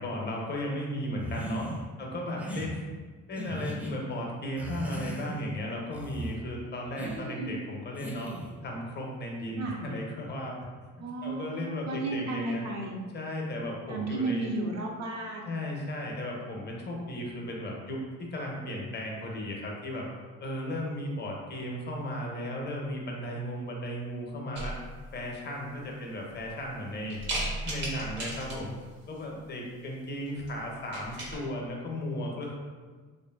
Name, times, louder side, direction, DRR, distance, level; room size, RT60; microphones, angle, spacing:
voice 1, 0.0-1.7 2.0-2.8 3.3-8.3 8.6-10.5 11.2-12.7 13.1-14.5 15.5-20.1 20.4-24.8 25.1-27.2 27.6-28.7 29.1-32.6, left 1 dB, 35° left, -1 dB, 0.6 m, -35 dB
sound 1, 1.2-1.8 2.4-2.7 3.4-3.9 4.6-5.5 5.9-6.4 7.0-7.2 7.9-8.6, equal, 5° right, 0.4 m, -38 dB
voice 2, 7.0-7.6 9.6-9.8 11.0-13.0 13.9-15.5, right 3 dB, 60° right, 0 dB, 0.5 m, -34 dB
sound 2, 24.5-25.1 25.7-25.8 26.3-26.7 27.1-28.8 30.3-30.5 30.8-31.4, right 1 dB, 75° right, 0.9 m, -35 dB
2.7 x 2.5 x 2.2 m, 1.4 s
cardioid pair, 90°, 30 cm